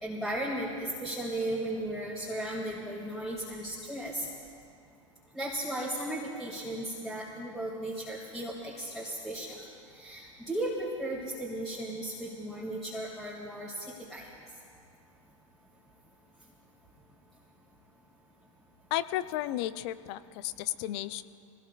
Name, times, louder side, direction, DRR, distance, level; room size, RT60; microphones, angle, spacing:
voice 1, 0.0-4.3 5.3-9.6 9.9-13.7 14.1-14.2, right 1 dB, ahead, -6 dB, 2.5 m, -35 dB
voice 2, 18.9-21.2, left 14 dB, 50° left, 14 dB, 0.6 m, -33 dB
23.5 x 17.5 x 2.5 m, 2.4 s
hypercardioid pair, 95°, 17 cm